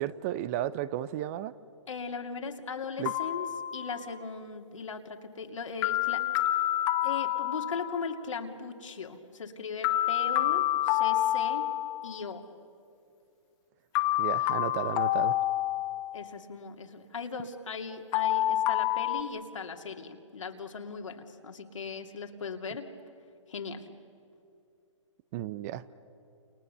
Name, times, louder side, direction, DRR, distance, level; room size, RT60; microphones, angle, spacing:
voice 1, 0.0-1.5 3.0-3.1 14.2-15.4 25.3-25.8, right 12 dB, 30° right, 17 dB, 0.7 m, -33 dB
voice 2, 1.9-3.5 3.7-6.5 7.0-11.7 12.0-12.4 16.1-22.9 23.5-23.9, left 5 dB, 70° left, 4 dB, 2.7 m, -38 dB
sound 1, 3.1-4.2 5.8-8.1 9.8-12.2 14.0-16.3 18.1-19.2, left 14 dB, 25° left, 1.0 m, -28 dB
30.0 x 29.0 x 6.8 m, 2.6 s
hypercardioid pair, 140°, 17 cm